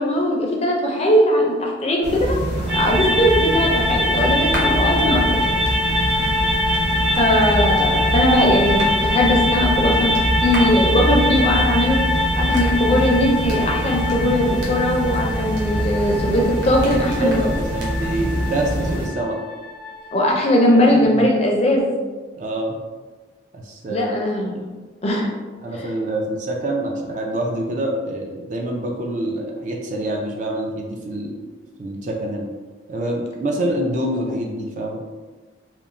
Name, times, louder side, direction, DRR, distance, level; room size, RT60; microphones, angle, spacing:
voice 1, 0.0-2.4 2.7-5.5 7.2-12.0 12.4-17.4 20.1-21.9 23.9-24.7 25.0-25.3 25.7-25.9, left 1 dB, 35° left, -1 dB, 0.4 m, -19 dB
sound 1, 2.0-19.1, right 1 dB, 65° right, 0.7 m, -24 dB
sound 2, 2.7-21.0, left 2 dB, 90° right, 1.2 m, -24 dB
voice 2, 16.9-19.4 21.2-21.3 22.4-22.8 23.5-24.1 25.6-31.4 31.8-32.5 32.9-35.0, right 1 dB, 40° right, 0 dB, 0.3 m, -26 dB
2.9 x 2.1 x 2.5 m, 1.3 s
head